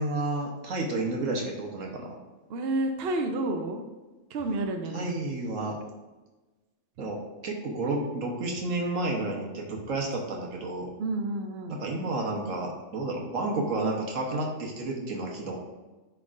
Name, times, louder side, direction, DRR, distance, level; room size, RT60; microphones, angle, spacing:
voice 1, 0.0-2.2 4.9-5.8 7.0-10.9 11.7-15.6, right 2 dB, 75° right, 0 dB, 1.4 m, -31 dB
voice 2, 2.5-3.8 4.3-5.2 11.0-11.8, right 2 dB, 60° right, 4 dB, 0.8 m, -30 dB
10.5 x 3.5 x 2.5 m, 1.2 s
omnidirectional pair, 1.4 m